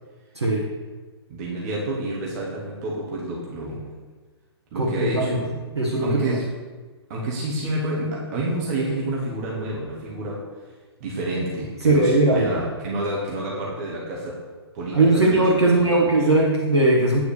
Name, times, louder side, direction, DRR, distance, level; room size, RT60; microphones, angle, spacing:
voice 1, 0.3-0.7 4.7-5.4 5.8-6.4 11.8-12.5 14.9-17.2, right 2 dB, 75° right, -2 dB, 1.4 m, -19 dB
voice 2, 1.3-3.8 4.7-5.6 6.0-6.6 7.1-10.5 11.0-14.4 14.7-16.2, right 1 dB, 35° right, -4 dB, 1.9 m, -29 dB
9.2 x 4.8 x 6.7 m, 1.3 s
figure-of-eight pair, 120°, 14 cm